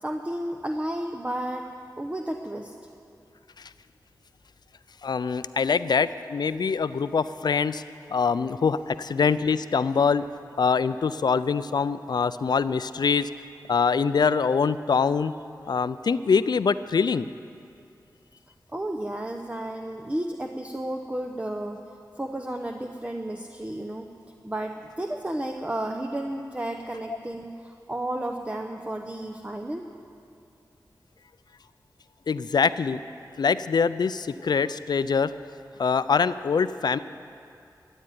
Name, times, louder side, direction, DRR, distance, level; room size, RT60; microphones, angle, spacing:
voice 1, 0.0-2.7 18.7-24.1 24.4-29.8, right 1 dB, 20° right, 4 dB, 0.8 m, -32 dB
voice 2, 5.0-7.8 8.1-10.2 10.6-13.3 13.7-15.3 15.7-17.3 32.3-33.0 33.4-35.3 35.8-37.0, left 5 dB, 75° left, 14 dB, 0.4 m, -24 dB
14.0 x 9.0 x 9.4 m, 2.5 s
cardioid pair, 50°, 7 cm